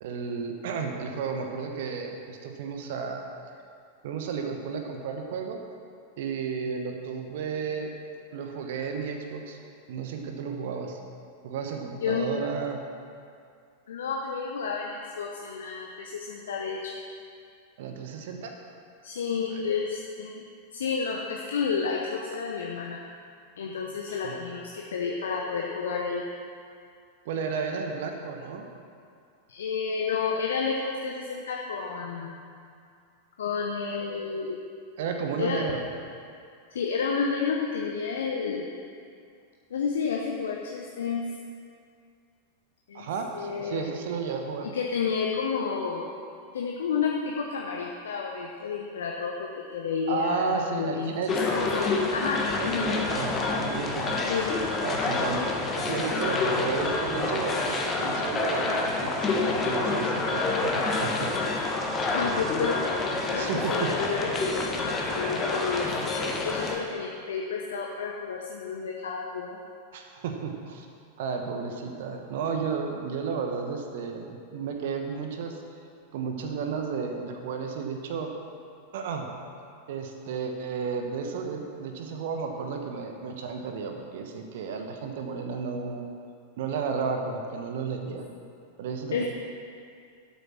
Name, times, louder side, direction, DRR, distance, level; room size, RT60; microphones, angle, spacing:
voice 1, 0.0-3.2 4.0-5.6 6.2-7.9 8.3-9.6 9.9-11.0 11.4-12.8 17.8-18.5 24.1-24.4 27.2-28.7 35.0-35.8 42.9-44.7 50.1-51.3 52.6-54.2 54.8-55.4 55.8-61.6 63.4-63.9 69.9-70.9 71.2-75.6 76.1-78.3 78.9-79.3 79.9-86.0 86.6-88.3 88.8-89.2, right 5 dB, 55° right, 4 dB, 1.2 m, -33 dB
voice 2, 13.9-16.9 19.0-20.4 20.7-23.0 23.6-26.2 29.5-32.4 33.4-34.6 35.4-35.6 36.7-38.7 39.7-41.2 42.9-43.1 43.3-43.8 44.6-46.1 46.5-52.9 54.3-54.5 62.1-62.8 63.3-69.6 89.1-89.2, left 5 dB, 65° left, 0 dB, 1.0 m, -31 dB
sound 1, 51.3-66.8, left 3 dB, 25° left, 1.5 m, -28 dB
11.5 x 8.5 x 6.1 m, 2.4 s
figure-of-eight pair, 90°, 0 cm